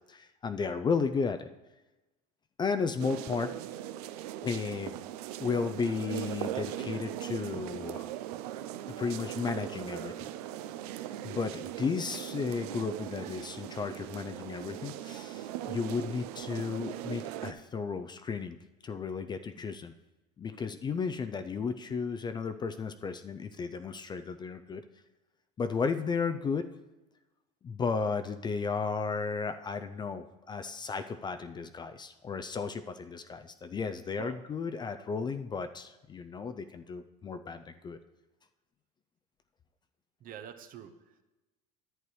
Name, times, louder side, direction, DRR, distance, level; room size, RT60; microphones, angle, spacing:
voice 1, 0.1-1.5 2.6-3.5 4.4-5.0 5.4-8.1 8.9-10.3 11.2-18.6 18.8-19.9 20.4-24.8 25.6-26.7 27.6-38.0, left 5 dB, 25° left, 9 dB, 0.4 m, -34 dB
sound 1, 3.0-17.5, right 12 dB, 85° right, 0.5 m, -39 dB
voice 2, 40.2-41.2, right 9 dB, 45° right, 9 dB, 0.8 m, -46 dB
11.0 x 8.2 x 3.1 m, 1.1 s
supercardioid pair, 105°, 19 cm